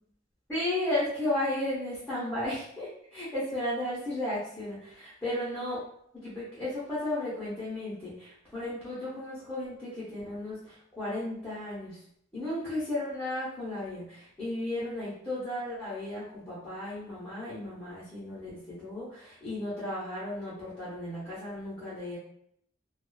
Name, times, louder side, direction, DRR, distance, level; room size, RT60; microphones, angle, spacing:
voice 1, 0.5-5.8 6.1-12.0 12.3-22.2, left 1 dB, 10° left, -11 dB, 0.7 m, -34 dB
2.4 x 2.3 x 2.2 m, 0.71 s
head